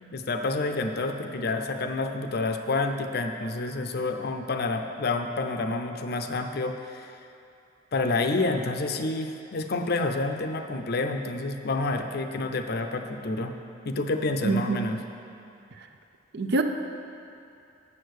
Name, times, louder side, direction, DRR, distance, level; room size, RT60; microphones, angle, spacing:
voice 1, 0.0-7.1 7.9-13.5 13.9-15.0, left 3 dB, 50° left, 6 dB, 0.6 m, -29 dB
voice 2, 14.4-14.8 16.3-16.6, right 3 dB, 55° right, 6 dB, 0.6 m, -25 dB
8.6 x 6.6 x 6.4 m, 2.6 s
head